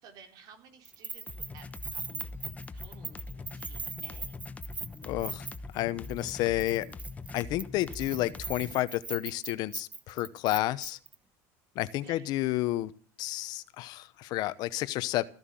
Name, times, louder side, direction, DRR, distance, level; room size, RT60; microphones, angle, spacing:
voice 1, 0.0-1.7 1.9-4.4 12.0-12.3, right 6 dB, 55° right, 5 dB, 3.7 m, -55 dB
Keys jangling, 0.8-5.8 6.0-6.3 6.6-11.1, right 4 dB, 15° right, 0.8 m, -40 dB
sound 1, 1.3-8.8, left 3 dB, 20° left, 1.0 m, -43 dB
voice 2, 5.1-5.4 5.7-6.9 7.3-11.0 11.7-12.9 13.2-15.2, left 16 dB, 60° left, 15 dB, 1.0 m, -31 dB
14.5 x 11.0 x 7.6 m, 0.41 s
supercardioid pair, 130°, 8 cm